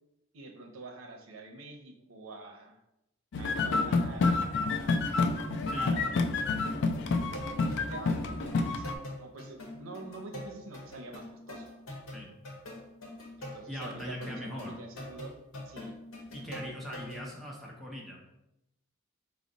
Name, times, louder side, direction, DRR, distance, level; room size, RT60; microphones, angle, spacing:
voice 1, 0.3-2.8 3.4-5.2 5.7-6.1 7.6-11.7 13.4-15.3 15.7-15.9, right 3 dB, 80° right, 3 dB, 0.6 m, -46 dB
sound 1, 3.3-8.9, left 3 dB, 60° left, 0.3 m, -29 dB
sound 2, 4.9-17.3, left 1 dB, 75° left, 0.9 m, -44 dB
voice 2, 13.7-14.7 16.3-18.2, equal, ahead, -3 dB, 0.7 m, -40 dB
4.9 x 2.0 x 3.8 m, 0.88 s
head